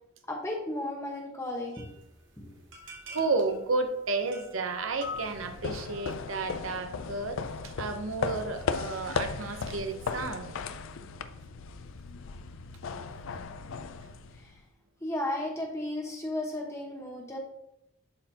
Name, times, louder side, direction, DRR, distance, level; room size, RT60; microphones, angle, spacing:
voice 1, 0.3-1.9 2.4-2.5 9.9-10.0 14.4-14.5 15.0-17.4, left 1 dB, 15° left, 0 dB, 1.1 m, -34 dB
sound 1, 1.7-6.3, left 3 dB, 65° right, 1.8 m, -46 dB
voice 2, 3.1-10.5 13.0-13.2, right 3 dB, 80° right, 7 dB, 0.8 m, -32 dB
sound 2, 5.0-14.6, left 5 dB, 75° left, 0.4 m, -36 dB
11.0 x 4.3 x 2.8 m, 0.84 s
head